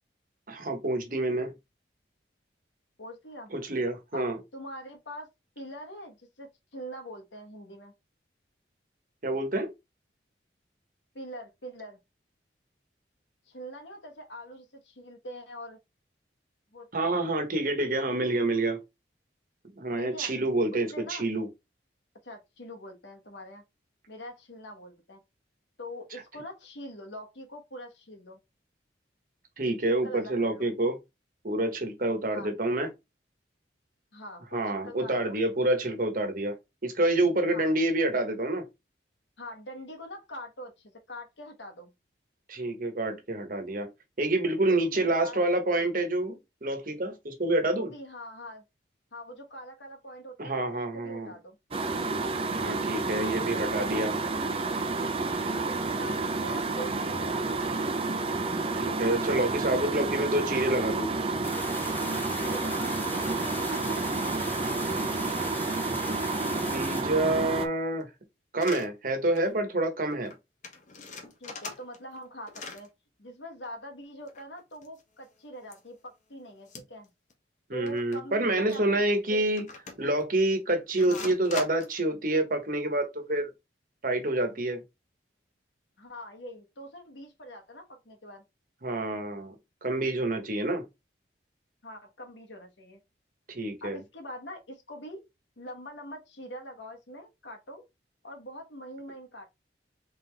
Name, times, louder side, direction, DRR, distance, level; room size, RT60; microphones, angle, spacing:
voice 1, 0.5-1.5 3.5-4.4 9.2-9.7 16.9-18.8 19.8-21.5 29.6-31.0 31.4-32.9 34.5-36.5 36.8-38.6 42.5-43.9 44.2-47.9 50.4-51.3 52.6-54.2 58.7-61.1 66.5-68.1 68.5-70.3 77.7-79.7 80.0-83.5 84.0-84.8 88.8-89.5 89.8-90.8 93.5-94.0, right 2 dB, 50° right, 1.2 m, -28 dB
voice 2, 3.0-3.5 4.1-5.3 5.5-7.9 11.1-12.0 13.5-15.8 16.7-17.3 19.9-20.3 20.7-21.3 22.2-23.6 24.1-25.2 25.8-28.4 29.8-30.7 32.3-32.5 34.1-35.4 37.5-37.8 39.4-41.9 44.6-45.5 47.7-48.6 49.1-51.6 55.5-57.6 62.0-63.0 63.3-65.4 71.4-72.9 73.2-77.1 77.7-79.4 81.0-81.3 86.0-88.4 91.8-93.0 93.8-95.2 95.6-97.8 98.2-99.5, equal, 80° left, 1.4 m, -44 dB
sound 1, 51.7-67.7, right 3 dB, 30° right, 0.6 m, -30 dB
sound 2, 61.4-67.0, left 2 dB, 10° left, 0.6 m, -39 dB
sound 3, 68.6-68.9 69.3-69.5 69.8-69.9 70.1-70.3 70.6-72.2 72.5-72.9 74.2-75.2 75.7-75.8 76.7-77.0 77.3-77.4 77.9-78.2 78.7-78.8 79.6-80.2 81.0-82.0, left 4 dB, 40° left, 1.1 m, -41 dB
4.0 x 3.7 x 3.3 m
head